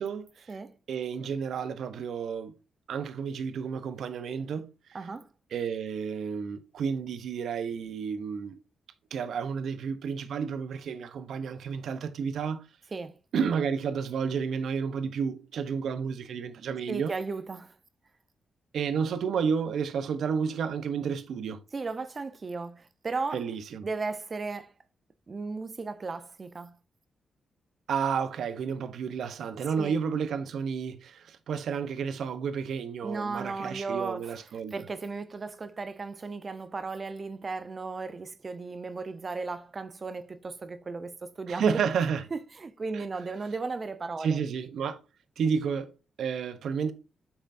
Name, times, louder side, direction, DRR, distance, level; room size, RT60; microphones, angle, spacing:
voice 1, 0.0-0.6 0.9-2.5 2.9-4.7 5.5-8.6 9.1-12.6 13.3-17.1 18.7-21.6 23.3-23.9 27.9-34.8 41.5-42.2 42.9-43.0 44.2-45.0 45.4-46.9, right 6 dB, 80° right, 0.9 m, -31 dB
voice 2, 4.9-5.3 12.9-13.2 16.9-17.8 21.7-23.4 23.8-24.7 25.3-26.8 29.8-30.0 33.0-34.4 34.7-41.8 42.3-44.4, right 4 dB, 40° right, 0.8 m, -35 dB
8.5 x 5.9 x 2.6 m
cardioid pair, 70°, 0 cm